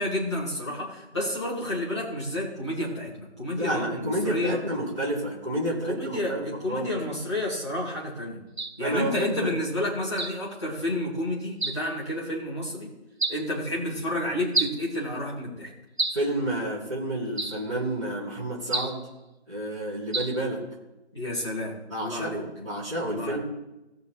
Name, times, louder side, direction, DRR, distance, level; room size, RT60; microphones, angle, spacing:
voice 1, 0.0-4.6 5.8-8.4 8.8-12.9 13.3-15.7 21.1-22.4 23.0-23.4, left 1 dB, 25° left, -6 dB, 2.7 m, -30 dB
voice 2, 3.6-6.9 8.8-9.6 16.1-19.1 19.5-20.6 21.9-23.4, right 1 dB, 30° right, -10 dB, 2.7 m, -30 dB
sound 1, 8.6-8.8 10.2-10.4 11.6-11.9 13.2-13.5 14.5-14.9 16.0-16.3 17.4-17.7 18.7-19.0 20.1-20.4, right 2 dB, 65° right, 1.0 m, -29 dB
18.5 x 6.6 x 3.3 m, 0.99 s
figure-of-eight pair, 170°, 34 cm